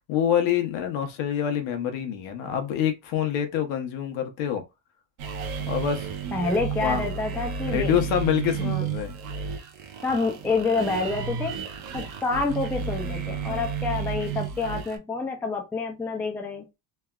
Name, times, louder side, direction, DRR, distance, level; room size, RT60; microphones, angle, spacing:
voice 1, 0.0-4.6 5.7-6.1 6.8-7.1 7.7-9.1, left 9 dB, 75° left, 0.9 m, -26 dB
sound 1, 5.2-15.0, right 6 dB, 50° right, 0.7 m, -32 dB
voice 2, 6.3-7.9 8.5-8.8 10.0-11.5 11.9-16.7, left 3 dB, 5° left, 0.3 m, -28 dB
3.2 x 2.3 x 2.3 m
cardioid pair, 150°, 47 cm